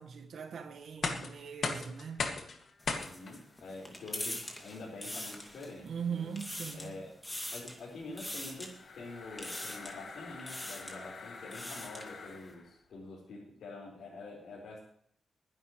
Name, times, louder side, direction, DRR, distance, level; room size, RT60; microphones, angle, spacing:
voice 1, 0.0-2.3 5.8-6.9, right 6 dB, 75° right, 1.5 m, -40 dB
sound 1, 0.8-12.7, left 4 dB, 55° left, 2.1 m, -42 dB
sound 2, 2.8-5.9 6.2-6.9 7.2-7.8 8.2-8.7 9.4-10.0 10.4-11.0 11.4-12.1, left 1 dB, 10° left, 2.5 m, -42 dB
voice 2, 2.9-6.3 6.7-7.2 7.5-14.8, left 3 dB, 85° left, 4.8 m, -46 dB
21.5 x 11.0 x 3.2 m
wide cardioid pair, 155°, 0 cm